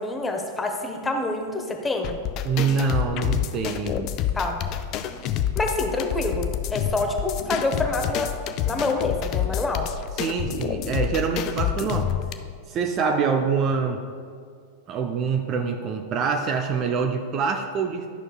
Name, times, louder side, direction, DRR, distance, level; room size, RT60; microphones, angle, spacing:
voice 1, 0.0-2.2 4.3-4.6 5.5-8.3 8.6-9.9 13.0-13.2, left 2 dB, 15° left, 3 dB, 0.8 m, -27 dB
sound 1, 2.0-12.3, left 10 dB, 40° left, 0.4 m, -28 dB
voice 2, 2.4-4.1 10.2-12.2 12.7-14.0 14.9-18.1, right 5 dB, 35° right, 6 dB, 0.5 m, -25 dB
11.5 x 6.2 x 2.3 m, 2.1 s
figure-of-eight pair, 90°, 0 cm